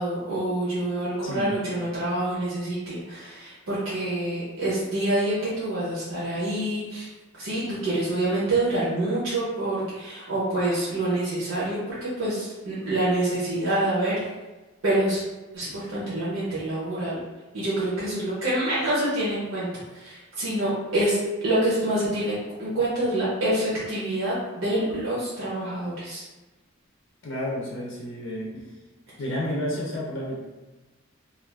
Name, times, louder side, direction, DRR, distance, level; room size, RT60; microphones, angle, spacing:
voice 1, 0.0-7.1 7.4-14.1 14.8-15.2 15.5-17.2 17.5-19.7 20.0-21.2 21.4-26.2, right 1 dB, 70° right, -9 dB, 0.8 m, -26 dB
voice 2, 1.2-1.6 27.2-28.7 29.2-30.4, equal, 65° left, -3 dB, 0.5 m, -31 dB
2.5 x 2.4 x 3.3 m, 1.1 s
head